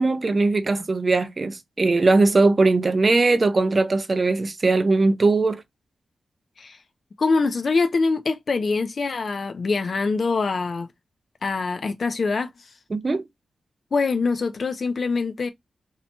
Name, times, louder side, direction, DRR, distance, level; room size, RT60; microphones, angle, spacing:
voice 1, 0.0-5.6 12.9-13.2, right 3 dB, 35° right, 0.4 m, -20 dB
voice 2, 7.2-10.9 11.4-12.5 13.9-15.5, left 4 dB, 55° left, 0.4 m, -24 dB
2.7 x 2.1 x 2.7 m
wide cardioid pair, 95°, 0 cm